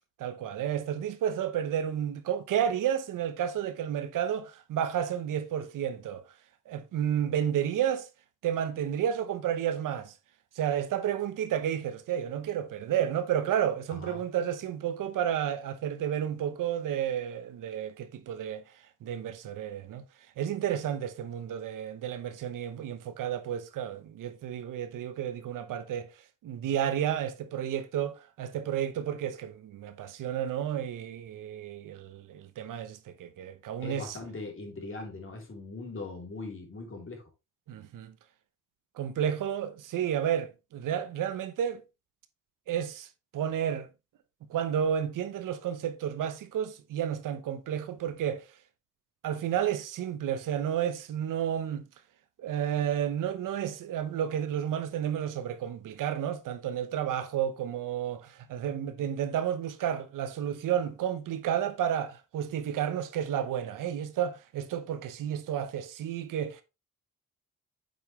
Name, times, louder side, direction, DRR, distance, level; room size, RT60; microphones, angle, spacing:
voice 1, 0.2-6.2 6.7-8.1 8.4-10.1 10.5-18.6 19.0-20.0 20.4-26.1 26.4-34.2 37.7-38.1 39.0-41.8 42.7-43.1 43.3-43.9 44.5-48.4 49.2-51.9 52.4-66.6, right 9 dB, 80° right, 0.9 m, -31 dB
voice 2, 13.9-14.2 33.8-37.2, left 3 dB, 40° left, 3.2 m, -40 dB
7.9 x 5.0 x 3.2 m
cardioid pair, 70°, 32 cm